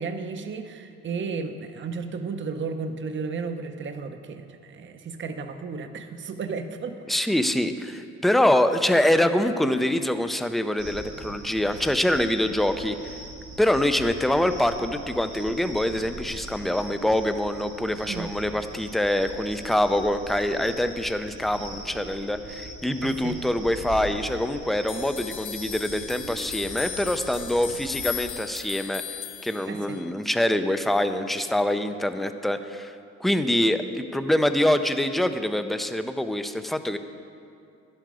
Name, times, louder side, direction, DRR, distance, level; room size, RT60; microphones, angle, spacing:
voice 1, 0.0-7.4 18.1-18.3 23.0-23.4 29.7-30.0, right 4 dB, 40° right, 7 dB, 0.7 m, -34 dB
voice 2, 7.1-13.0 13.6-29.0 29.4-32.9 33.2-37.0, left 1 dB, ahead, 9 dB, 0.4 m, -25 dB
sound 1, 10.8-28.3, right 2 dB, 85° right, 2.0 m, -41 dB
sound 2, 24.9-30.1, left 11 dB, 85° left, 0.7 m, -37 dB
11.0 x 7.8 x 4.8 m, 2.4 s
cardioid pair, 90°, 30 cm